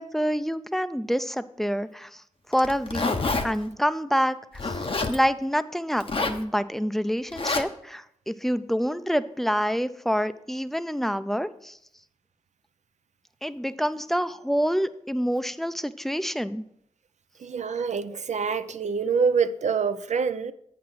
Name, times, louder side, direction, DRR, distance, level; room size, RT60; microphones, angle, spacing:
voice 1, 0.0-2.1 2.5-3.2 3.4-4.4 4.6-4.8 5.1-11.8 13.4-16.6, equal, ahead, 0.5 m, -27 dB
Zipper (clothing), 2.5-3.5 4.6-5.2 6.0-6.4 7.3-7.6, left 3 dB, 45° left, 0.8 m, -27 dB
voice 2, 17.4-20.5, right 5 dB, 65° right, 0.4 m, -26 dB
8.3 x 6.0 x 4.7 m
cardioid pair, 45°, 13 cm